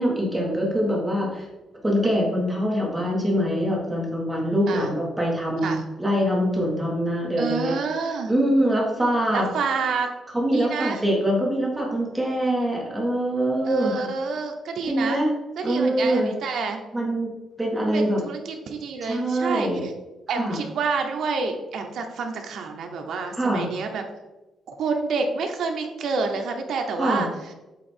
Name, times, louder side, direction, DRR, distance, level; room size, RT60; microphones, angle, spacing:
voice 1, 0.0-1.5 1.8-7.7 8.3-9.5 10.3-14.1 14.8-15.3 15.6-16.3 16.9-18.2 19.0-19.9 20.4-20.6 23.4-23.7 27.0-27.3, equal, 5° right, -3 dB, 1.5 m, -24 dB
voice 2, 7.4-8.3 9.3-10.1 10.5-11.0 13.6-15.2 15.6-16.8 17.9-19.9 20.3-24.0 24.7-27.3, right 4 dB, 65° right, 4 dB, 0.9 m, -28 dB
8.1 x 2.9 x 4.4 m, 1.1 s
cardioid pair, 165°, 0 cm